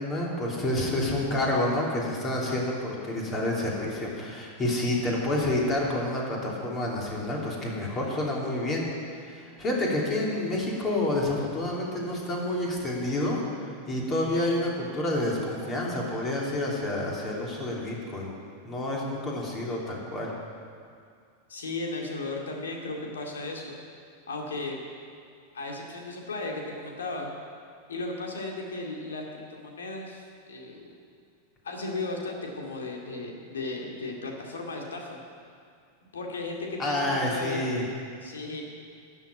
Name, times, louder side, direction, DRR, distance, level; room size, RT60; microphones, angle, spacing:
voice 1, 0.0-8.8 9.2-18.3 18.6-20.3 36.8-37.8, left 1 dB, 25° left, -3 dB, 3.3 m, -29 dB
voice 2, 21.5-23.8 24.3-24.8 25.5-27.3 27.9-30.9 31.6-35.2 36.1-37.6 38.2-38.6, left 2 dB, 65° left, 0 dB, 2.2 m, -35 dB
13.0 x 7.3 x 9.3 m, 2.3 s
figure-of-eight pair, 90°, 0 cm